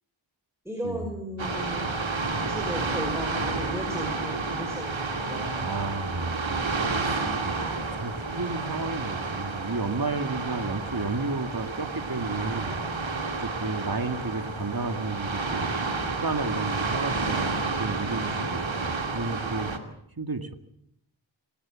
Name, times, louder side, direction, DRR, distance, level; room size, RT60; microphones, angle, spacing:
voice 1, 0.6-1.9 2.5-5.5, equal, 5° right, 2 dB, 5.8 m, -35 dB
sound 1, 1.4-19.8, right 3 dB, 70° right, 2.6 m, -30 dB
voice 2, 5.6-6.7 7.0-12.7 13.4-15.7 16.1-19.7 20.2-20.6, right 3 dB, 45° right, 8 dB, 2.3 m, -32 dB
24.5 x 19.0 x 7.7 m, 0.73 s
wide cardioid pair, 55°, 48 cm